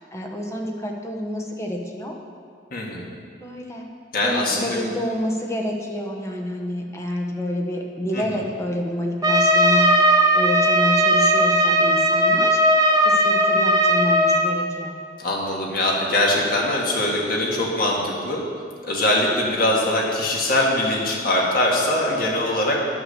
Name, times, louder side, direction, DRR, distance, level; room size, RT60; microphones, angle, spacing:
voice 1, 0.0-2.2 3.4-3.9 4.2-12.6 13.0-14.9, left 1 dB, 15° left, 1 dB, 1.0 m, -28 dB
voice 2, 2.7-3.1 4.1-4.8 8.1-8.4 15.2-18.4 18.8-22.8, left 1 dB, 55° left, -2 dB, 1.8 m, -22 dB
Trumpet, 9.2-14.5, right 1 dB, 20° right, 0.8 m, -17 dB
10.0 x 6.1 x 6.6 m, 2.1 s
head